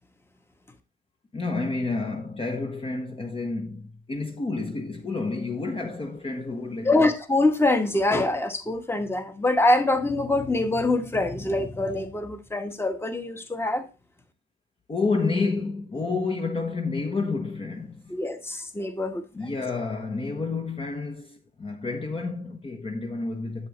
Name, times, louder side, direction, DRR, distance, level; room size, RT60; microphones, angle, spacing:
voice 1, 1.3-7.0 14.9-18.1 19.3-23.7, left 3 dB, 30° left, 1.0 m, -30 dB
voice 2, 6.8-13.9 18.1-19.2, left 2 dB, 10° left, 1.2 m, -24 dB
8.4 x 7.1 x 3.1 m
cardioid pair, 90°, 20 cm